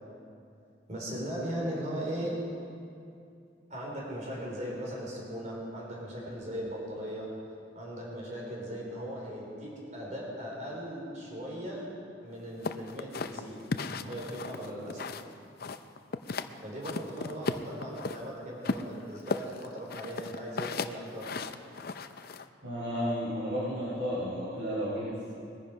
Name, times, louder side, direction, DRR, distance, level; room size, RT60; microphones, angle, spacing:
voice 1, 0.9-2.4 3.7-7.3 7.8-11.9 12.2-13.6 13.8-15.1 16.6-21.3, equal, 40° right, -3 dB, 3.9 m, -38 dB
sound 1, 12.6-15.3 15.6-16.5 16.8-18.2 18.6-22.5, left 4 dB, 55° left, 0.6 m, -35 dB
voice 2, 22.6-25.2, equal, 80° right, -10 dB, 4.8 m, -32 dB
21.5 x 10.5 x 5.0 m, 2.5 s
head